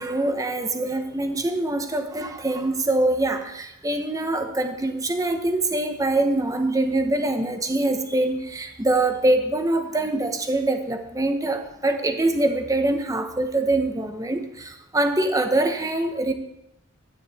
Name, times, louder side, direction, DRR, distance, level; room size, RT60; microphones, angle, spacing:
voice 1, 0.0-16.3, right 2 dB, 15° right, 6 dB, 0.9 m, -24 dB
12.5 x 9.7 x 4.2 m, 0.83 s
head